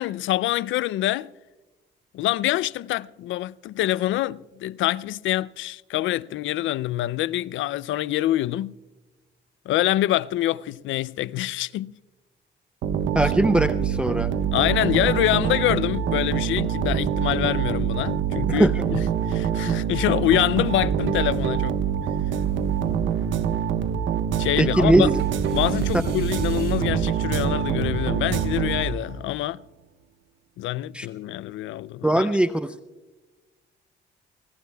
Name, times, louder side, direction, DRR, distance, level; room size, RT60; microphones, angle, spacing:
voice 1, 0.0-1.3 2.1-8.7 9.7-11.9 13.2-13.3 14.5-21.8 24.4-25.1 25.5-29.6 30.6-32.3, left 14 dB, 80° left, 0.4 m, -25 dB
sound 1, 12.8-29.3, right 8 dB, 75° right, 1.1 m, -25 dB
voice 2, 13.1-14.3 18.5-18.8 24.6-25.2 30.9-31.1 32.0-32.7, right 1 dB, 5° right, 0.5 m, -21 dB
sound 2, 20.1-20.9 22.0-23.1 25.1-27.1, right 6 dB, 60° right, 4.1 m, -49 dB
27.5 x 16.5 x 2.3 m
cardioid pair, 75°, 20 cm